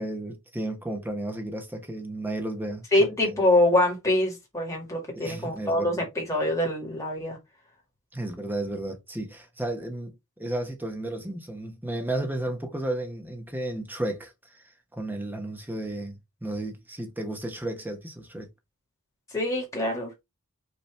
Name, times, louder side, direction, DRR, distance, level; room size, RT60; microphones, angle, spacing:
voice 1, 0.0-3.4 5.1-6.0 8.1-14.6 14.9-18.5, right 1 dB, 10° right, 1.0 m, -33 dB
voice 2, 2.9-7.4 19.3-20.1, left 1 dB, 15° left, 1.9 m, -24 dB
5.5 x 3.0 x 3.3 m
head